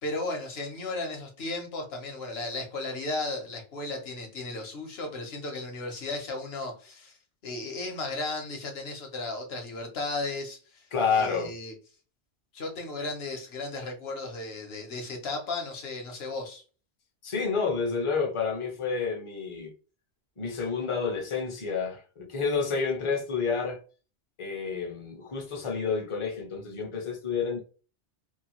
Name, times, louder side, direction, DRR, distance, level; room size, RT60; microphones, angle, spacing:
voice 1, 0.0-7.2 7.4-11.7 12.5-16.6, left 2 dB, 60° left, 1.1 m, -35 dB
voice 2, 10.9-11.5 17.2-19.7 20.4-23.8 24.4-27.6, left 5 dB, 35° left, 0.6 m, -29 dB
2.6 x 2.3 x 2.9 m
omnidirectional pair, 1.3 m